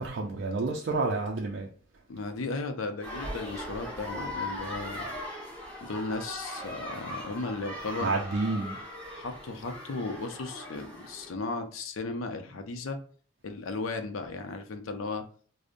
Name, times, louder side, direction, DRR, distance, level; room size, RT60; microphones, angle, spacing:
voice 1, 0.0-1.7 8.0-8.8, right 3 dB, 60° right, 0.4 m, -29 dB
voice 2, 2.1-5.1 5.8-8.1 9.1-13.0 13.4-15.2, left 3 dB, 90° left, 0.5 m, -35 dB
sound 1, 3.0-11.3, left 1 dB, 5° left, 1.2 m, -39 dB
5.0 x 2.0 x 2.5 m
head